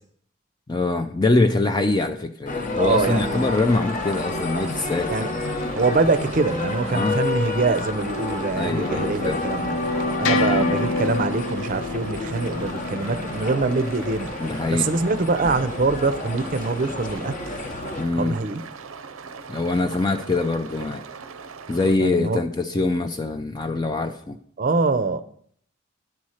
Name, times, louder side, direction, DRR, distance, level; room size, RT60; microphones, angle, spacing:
voice 1, 0.7-5.4 6.9-7.2 8.5-9.4 14.4-14.9 18.0-18.4 19.5-21.0 21.7-24.4, left 2 dB, 20° left, 6 dB, 0.4 m, -23 dB
sound 1, 2.5-18.0, left 2 dB, 40° left, 0.8 m, -30 dB
voice 2, 2.8-3.5 5.1-5.3 5.8-9.8 10.2-14.3 14.7-17.3 18.2-18.6 22.0-22.4 24.6-25.2, right 3 dB, 40° right, 11 dB, 0.5 m, -24 dB
sound 2, 2.9-22.0, right 5 dB, 90° right, 0.6 m, -40 dB
sound 3, 8.8-13.9, left 3 dB, 85° left, 0.7 m, -27 dB
10.5 x 4.2 x 6.4 m, 0.62 s
head